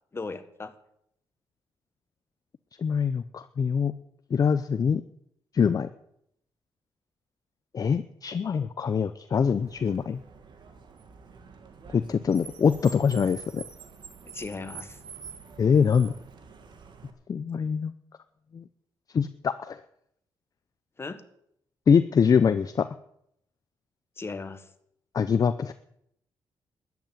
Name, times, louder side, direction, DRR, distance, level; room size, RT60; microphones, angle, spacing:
voice 1, 0.1-0.7 14.2-15.0 21.0-21.2 24.2-24.7, left 3 dB, 30° left, 10 dB, 1.5 m, -37 dB
voice 2, 2.8-3.9 4.3-5.0 5.5-5.9 7.7-10.2 11.9-13.6 15.6-16.1 17.3-17.9 18.5-18.6 19.1-19.8 21.9-22.9 25.1-25.7, left 6 dB, 45° left, 12 dB, 0.7 m, -24 dB
Car, 9.6-17.1, right 5 dB, 60° right, 2.1 m, -46 dB
13.5 x 9.5 x 9.0 m, 0.73 s
cardioid pair, 105°, 9 cm